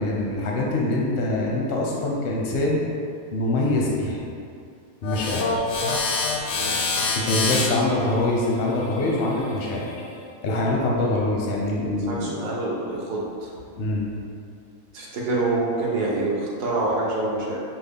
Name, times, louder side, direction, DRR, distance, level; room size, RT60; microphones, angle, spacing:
voice 1, 0.0-2.8 3.3-4.2 5.0-5.7 7.1-9.8 10.4-12.3 13.8-14.1, left 2 dB, 60° left, -3 dB, 0.6 m, -24 dB
sound 1, 5.0-10.2, left 4 dB, 85° left, 1.2 m, -27 dB
voice 2, 12.1-13.5 14.9-17.6, right 2 dB, 70° right, -4 dB, 1.3 m, -26 dB
5.8 x 2.1 x 3.5 m, 2.4 s
omnidirectional pair, 1.8 m